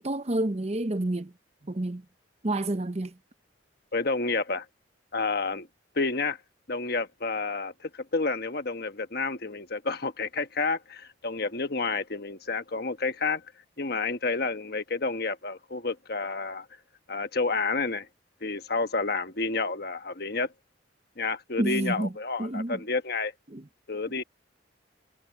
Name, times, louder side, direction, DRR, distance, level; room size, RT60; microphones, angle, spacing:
voice 1, 0.0-1.3 1.6-2.0 2.4-3.2 21.6-22.1 22.4-22.8 23.5-23.7, right 1 dB, 35° right, 0.8 m, -29 dB
voice 2, 3.9-4.7 5.1-5.7 5.9-6.4 6.7-13.4 13.8-16.7 17.1-18.1 18.4-20.5 21.2-23.3 23.9-24.2, left 3 dB, 55° left, 1.3 m, -30 dB
head